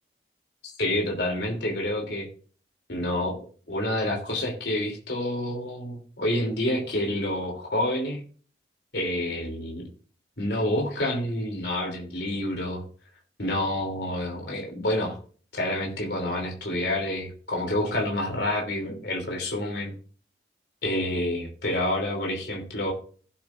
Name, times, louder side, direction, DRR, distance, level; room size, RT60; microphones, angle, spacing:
voice 1, 0.8-2.3 2.9-8.2 8.9-9.9 10.4-12.8 13.4-15.2 15.5-19.9 20.8-22.9, left 1 dB, 65° left, 0 dB, 3.2 m, -28 dB
15.5 x 8.6 x 2.6 m, 0.42 s
head